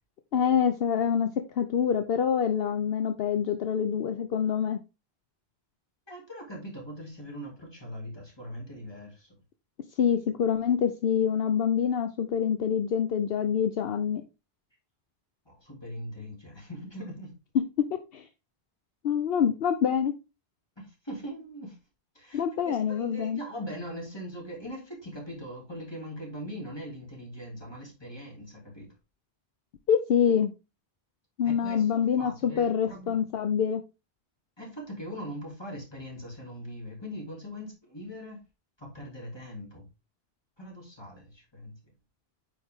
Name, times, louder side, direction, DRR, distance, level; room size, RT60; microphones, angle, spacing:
voice 1, 0.3-1.3 1.6-4.8 10.0-14.2 17.5-18.3 19.0-20.2 22.3-23.4 29.9-30.5 31.4-33.8, left 8 dB, 70° left, 0.9 m, -26 dB
voice 2, 6.1-9.3 15.4-17.3 20.8-21.8 22.1-28.9 31.4-33.2 34.6-38.4 38.8-39.8 40.6-41.8, equal, 25° left, 2.9 m, -41 dB
8.8 x 4.7 x 3.6 m
omnidirectional pair, 1.1 m